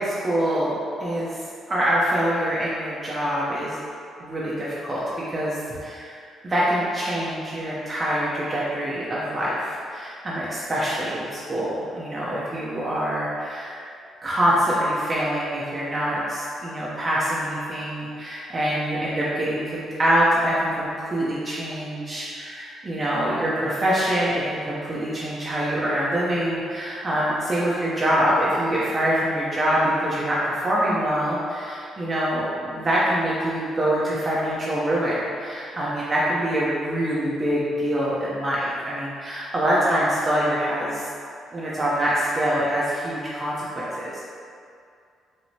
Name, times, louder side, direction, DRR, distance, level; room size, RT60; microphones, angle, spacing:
voice 1, 0.0-1.4 1.7-3.8 4.2-13.8 14.2-41.0 41.5-44.2, equal, 35° right, -8 dB, 0.6 m, -25 dB
4.6 x 2.0 x 2.7 m, 2.3 s
cardioid pair, 90°, 0 cm